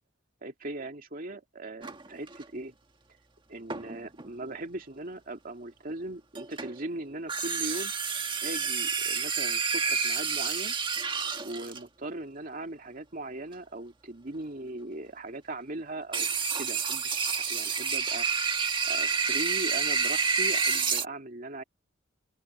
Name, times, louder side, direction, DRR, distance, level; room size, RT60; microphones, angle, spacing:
voice 1, 0.4-2.8 3.5-7.9 8.4-10.8 11.4-16.3 16.5-18.3 18.9-21.6, right 2 dB, 45° right, 2.4 m, -39 dB
sound 1, 1.8-2.4 3.7-4.3 6.4-6.8 7.3-11.8 16.1-21.1, right 5 dB, 25° right, 1.8 m, -29 dB
open air
head